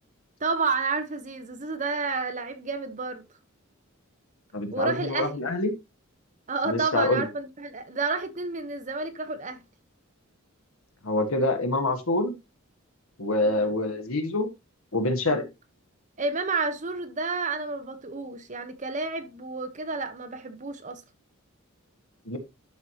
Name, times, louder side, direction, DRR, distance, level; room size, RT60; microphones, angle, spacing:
voice 1, 0.4-3.2 4.7-5.4 6.5-9.6 13.4-13.7 15.3-15.5 16.2-21.0, right 4 dB, 35° right, 1.0 m, -30 dB
voice 2, 4.5-5.7 6.7-7.2 11.0-12.3 13.2-14.5 14.9-15.4 22.2-22.4, left 2 dB, 75° left, 1.5 m, -26 dB
12.0 x 4.7 x 2.9 m
head